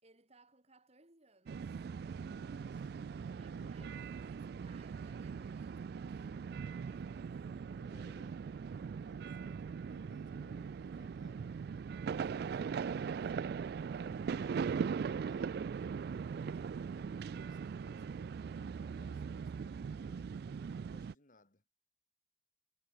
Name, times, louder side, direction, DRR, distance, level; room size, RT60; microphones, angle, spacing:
voice 1, 0.0-1.9 3.4-8.0, right 3 dB, 35° right, 4.8 m, -66 dB
sound 1, 1.5-21.1, right 6 dB, 60° right, 0.3 m, -40 dB
voice 2, 2.3-4.2 7.8-13.3 13.9-20.3 20.7-21.7, left 1 dB, 50° left, 2.4 m, -65 dB
head